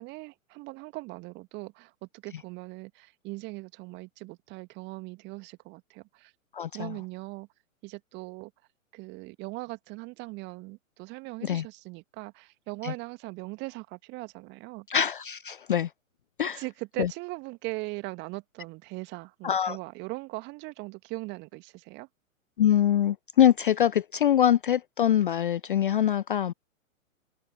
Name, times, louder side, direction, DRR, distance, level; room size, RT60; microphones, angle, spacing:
voice 1, 0.0-6.3 6.7-7.5 7.8-8.5 8.9-14.9 16.5-22.1, right 24 dB, 25° right, 1.9 m, -40 dB
voice 2, 6.5-7.0 11.4-11.6 12.8-12.9 14.9-15.9 16.4-16.6 17.0-17.1 19.4-19.8 22.6-26.5, left 10 dB, 40° left, 0.4 m, -24 dB
figure-of-eight pair, 115°, 42 cm